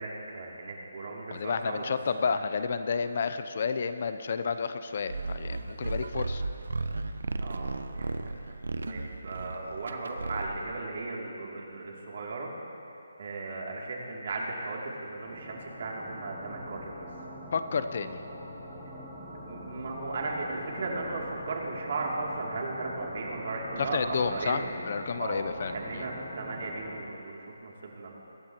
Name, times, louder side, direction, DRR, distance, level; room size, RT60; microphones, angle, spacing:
voice 1, 0.0-2.0 2.2-2.3 7.4-8.3 8.9-12.5 13.2-17.1 19.4-24.7 25.2-28.1, right 3 dB, 50° right, -2 dB, 2.8 m, -36 dB
voice 2, 1.3-6.4 17.5-18.2 23.8-26.1, left 5 dB, 45° left, 11 dB, 0.6 m, -31 dB
sound 1, 5.0-10.8, right 3 dB, 75° right, 0.8 m, -35 dB
sound 2, 15.2-27.0, equal, 5° left, 2.3 m, -43 dB
22.5 x 11.5 x 3.0 m, 2.8 s
hypercardioid pair, 160°, 0 cm